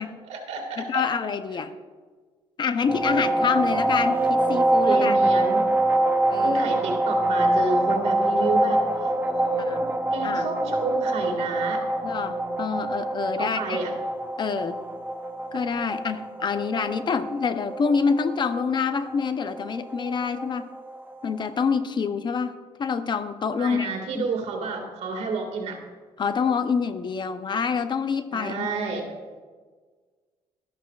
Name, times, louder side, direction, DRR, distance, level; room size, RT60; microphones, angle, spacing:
voice 1, 0.3-1.1 4.9-5.7 6.4-11.9 13.4-13.9 23.6-25.8 28.3-29.1, right 3 dB, 70° right, 3 dB, 2.0 m, -30 dB
voice 2, 0.8-1.7 2.6-5.2 6.3-6.6 9.7-9.9 10.2-10.5 12.0-13.8 14.4-14.8 15.5-20.6 21.2-23.9 24.1-24.2 26.2-28.7, left 5 dB, 40° left, 10 dB, 0.6 m, -26 dB
sound 1, 2.9-21.5, right 1 dB, 15° right, 0.8 m, -25 dB
12.5 x 12.0 x 2.4 m, 1.5 s
cardioid pair, 105°, 12 cm